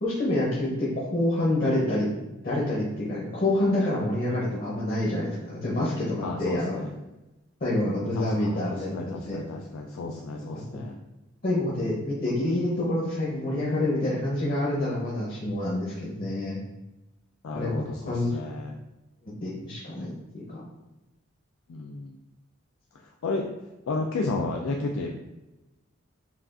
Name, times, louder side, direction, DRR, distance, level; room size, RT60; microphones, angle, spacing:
voice 1, 0.0-2.1 2.4-6.8 7.6-9.4 11.4-16.6 17.5-17.7 18.1-18.3 19.4-20.6, left 1 dB, 45° left, -6 dB, 0.7 m, -27 dB
voice 2, 6.2-6.9 8.1-11.0 11.9-12.1 17.4-18.8 21.7-22.2 22.9-23.5 23.9-25.1, left 3 dB, 85° left, 1 dB, 0.4 m, -32 dB
5.6 x 2.4 x 2.5 m, 1.0 s
head